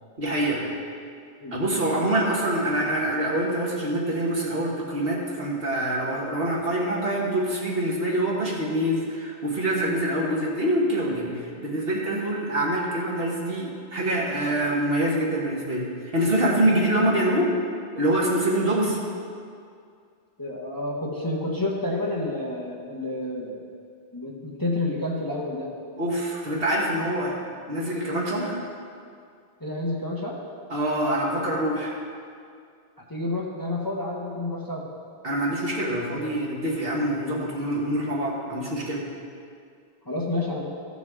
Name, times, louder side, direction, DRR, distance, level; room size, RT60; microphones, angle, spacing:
voice 1, 0.2-0.6 1.5-15.9 16.1-17.5 18.0-19.0 26.0-27.4 27.7-28.6 30.7-32.0 35.2-39.1, right 1 dB, 65° right, -4 dB, 1.7 m, -25 dB
voice 2, 20.4-23.6 24.1-25.7 29.6-30.4 33.1-34.8 40.1-40.6, left 2 dB, 20° left, -4 dB, 1.1 m, -29 dB
15.0 x 6.1 x 3.6 m, 2.3 s
omnidirectional pair, 1.1 m